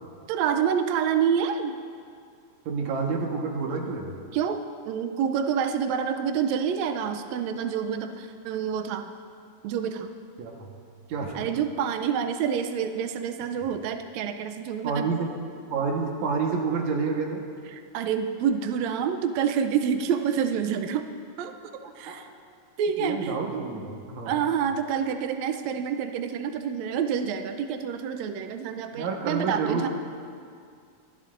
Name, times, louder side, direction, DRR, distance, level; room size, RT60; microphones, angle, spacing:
voice 1, 0.3-1.7 4.3-9.1 9.6-10.1 11.3-15.1 17.7-21.0 21.4-21.5 22.0-22.3 22.8-23.4 24.2-29.9, right 7 dB, 90° right, 6 dB, 1.5 m, -27 dB
voice 2, 2.7-4.1 10.4-10.8 11.1-11.5 14.8-15.3 15.7-17.4 21.8-22.2 23.0-24.4 28.9-29.9, right 5 dB, 65° right, 0 dB, 2.4 m, -29 dB
25.0 x 12.0 x 2.6 m, 2.3 s
omnidirectional pair, 3.9 m